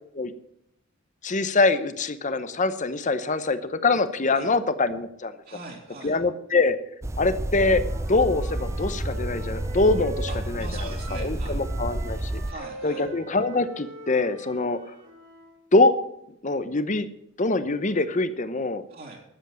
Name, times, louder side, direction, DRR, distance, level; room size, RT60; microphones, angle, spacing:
voice 1, 1.2-5.3 6.0-6.8 7.2-7.8 8.1-12.3 12.8-14.9 15.7-16.0 16.4-17.1 17.4-18.8, left 3 dB, 40° left, 13 dB, 0.9 m, -24 dB
voice 2, 5.5-6.2 10.3-11.6 12.5-13.1 18.9-19.2, right 3 dB, 50° right, -1 dB, 3.0 m, -41 dB
sound 1, 7.0-12.5, right 1 dB, 15° right, 0.4 m, -30 dB
Wind instrument woodwind instrument, 7.5-11.3 11.6-15.6, right 2 dB, 65° right, 4.1 m, -43 dB
13.5 x 8.1 x 7.5 m, 0.78 s
head